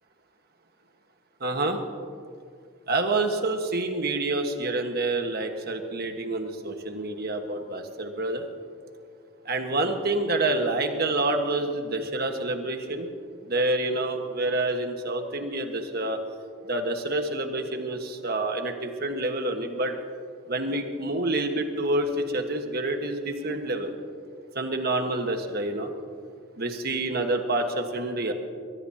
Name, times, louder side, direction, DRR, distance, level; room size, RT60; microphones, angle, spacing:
voice 1, 1.4-1.8 2.9-8.4 9.4-13.1 13.5-16.2 16.7-19.9 20.5-23.9 24.5-25.9 26.6-28.3, right 2 dB, 50° right, 5 dB, 1.5 m, -28 dB
23.0 x 19.5 x 2.9 m, 2.2 s
head